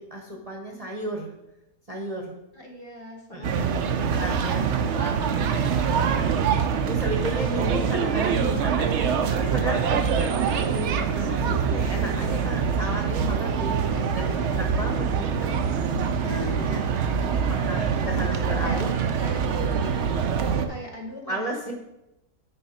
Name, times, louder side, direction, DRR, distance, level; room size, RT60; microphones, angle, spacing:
voice 1, 0.0-1.3 1.9-2.3 3.3-3.6 4.1-5.2 6.8-15.5 16.2-16.8 17.5-18.9 21.3-21.6, right 1 dB, 30° right, 0 dB, 0.8 m, -34 dB
voice 2, 2.5-4.3 4.7-5.4 5.8-6.2 13.8-14.7 16.3-16.8 17.4-18.0 18.2-18.9 19.2-20.2 20.4-21.7, left 1 dB, 45° left, 0 dB, 1.0 m, -41 dB
sound 1, 3.4-20.7, right 6 dB, 60° right, 0.7 m, -24 dB
9.4 x 4.7 x 4.2 m, 0.91 s
omnidirectional pair, 1.7 m